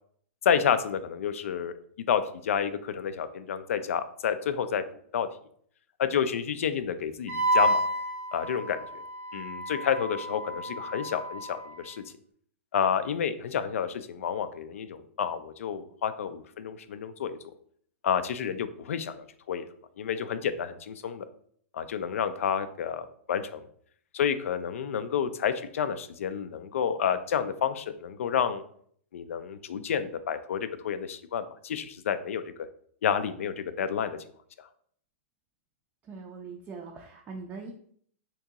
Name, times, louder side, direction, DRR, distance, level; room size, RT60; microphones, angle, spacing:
voice 1, 0.4-1.7 2.1-4.8 5.1-5.3 6.0-7.8 8.3-9.0 9.3-12.0 12.7-17.5 18.0-19.6 20.0-21.2 21.7-23.7 24.1-28.6 29.1-32.4 33.0-34.2, left 8 dB, 80° left, 12 dB, 0.4 m, -30 dB
Wind instrument woodwind instrument, 7.3-11.9, equal, 80° right, 0.8 m, -30 dB
voice 2, 36.1-37.7, right 4 dB, 20° right, 0 dB, 0.4 m, -41 dB
2.9 x 2.7 x 3.5 m, 0.62 s
hypercardioid pair, 140°, 7 cm